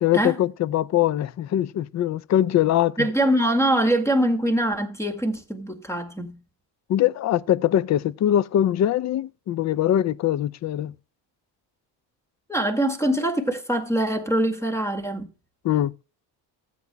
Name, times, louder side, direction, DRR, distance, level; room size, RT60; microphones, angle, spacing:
voice 1, 0.0-3.1 6.9-10.9 15.6-15.9, left 11 dB, 40° left, 0.4 m, -22 dB
voice 2, 3.0-6.4 12.5-15.3, right 1 dB, 5° left, 2.0 m, -23 dB
15.0 x 8.4 x 2.2 m
cardioid pair, 95°, 42 cm